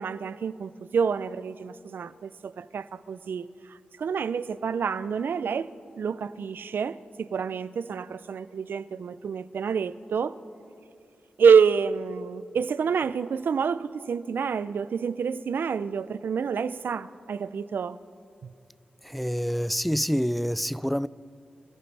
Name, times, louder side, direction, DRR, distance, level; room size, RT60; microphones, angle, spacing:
voice 1, 0.0-10.3 11.4-18.0 18.4-18.5, right 6 dB, 75° right, 0.5 m, -27 dB
voice 2, 19.0-21.1, equal, ahead, 0.4 m, -27 dB
27.0 x 14.0 x 3.4 m
cardioid pair, 45°, 4 cm